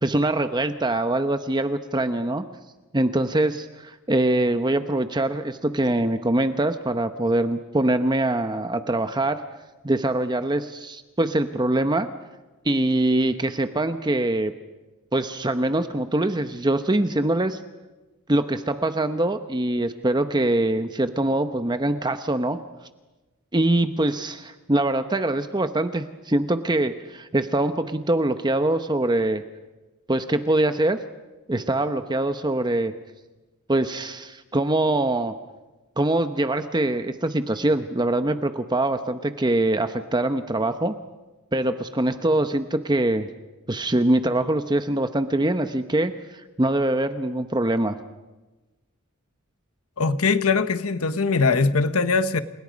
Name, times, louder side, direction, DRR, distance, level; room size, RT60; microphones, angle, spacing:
voice 1, 0.0-2.4 2.9-9.4 9.8-12.1 12.6-14.5 15.1-17.6 18.3-22.6 23.5-29.4 30.1-31.0 31.5-32.9 33.7-35.3 36.0-40.9 41.5-43.3 43.7-48.0, right 1 dB, 20° right, 9 dB, 0.9 m, -23 dB
voice 2, 50.0-52.4, left 4 dB, 90° left, 11 dB, 1.2 m, -21 dB
29.5 x 28.5 x 5.2 m, 1.1 s
head